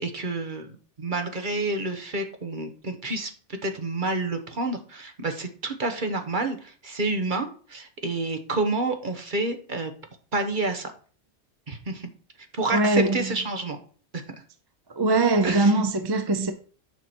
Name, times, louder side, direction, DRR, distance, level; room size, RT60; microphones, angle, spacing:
voice 1, 0.0-9.9 10.3-10.9 11.7-12.1 12.6-13.8 14.1-14.2 15.4-15.7, right 2 dB, 45° right, 1.4 m, -29 dB
voice 2, 12.7-13.4 14.9-16.5, right 2 dB, 25° right, 0.6 m, -22 dB
9.3 x 6.0 x 4.5 m
omnidirectional pair, 1.2 m